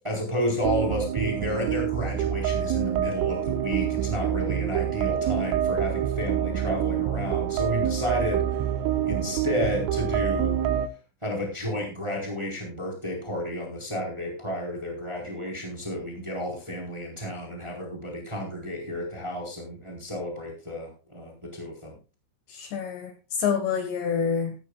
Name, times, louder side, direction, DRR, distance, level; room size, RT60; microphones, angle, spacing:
voice 1, 0.0-8.6 9.0-10.5 11.2-22.0, equal, 5° right, -1 dB, 3.1 m, -31 dB
sound 1, 0.6-10.9, right 10 dB, 80° right, 3.4 m, -27 dB
voice 2, 22.5-24.6, left 7 dB, 65° left, 5 dB, 3.4 m, -27 dB
15.5 x 14.0 x 2.4 m, 0.32 s
omnidirectional pair, 5.8 m